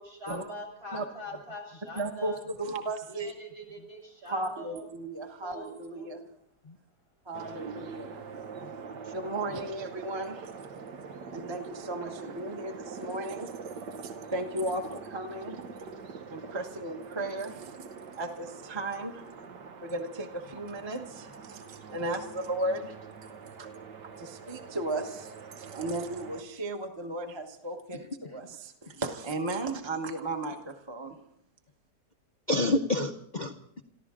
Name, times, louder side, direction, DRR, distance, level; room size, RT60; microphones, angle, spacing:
voice 1, 0.0-2.4 3.1-4.8 5.4-6.1, left 1 dB, 65° right, 2 dB, 6.8 m, -43 dB
voice 2, 1.9-3.3 4.3-6.2 7.3-8.2 9.1-10.5 11.3-13.5 14.0-15.6 16.3-17.7 18.2-19.2 19.8-23.0 23.6-23.7 24.2-31.2, right 2 dB, 20° right, 4 dB, 1.1 m, -35 dB
sound 1, 7.3-26.4, right 5 dB, 85° right, 1.8 m, -44 dB
voice 3, 27.9-28.4 28.9-29.0 32.5-33.8, left 2 dB, 45° left, 5 dB, 0.6 m, -31 dB
27.5 x 14.0 x 3.7 m, 0.72 s
omnidirectional pair, 1.8 m